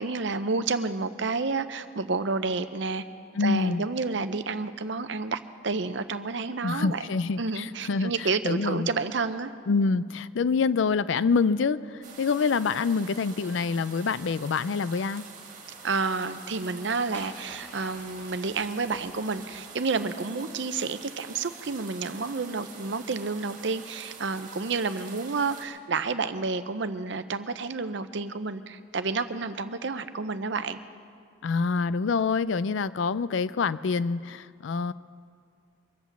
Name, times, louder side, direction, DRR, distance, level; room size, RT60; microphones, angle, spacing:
voice 1, 0.0-3.0 3.4-7.0 7.4-9.5 15.8-30.8, right 4 dB, 65° right, 11 dB, 0.7 m, -30 dB
voice 2, 3.4-3.8 6.6-8.9 9.7-15.2 31.4-34.9, left 4 dB, 75° left, 16 dB, 0.4 m, -26 dB
sound 1, 12.0-25.6, right 5 dB, 40° right, 2.1 m, -46 dB
sound 2, 17.1-19.6, right 1 dB, 10° left, 3.2 m, -48 dB
24.0 x 8.1 x 7.2 m, 2.1 s
head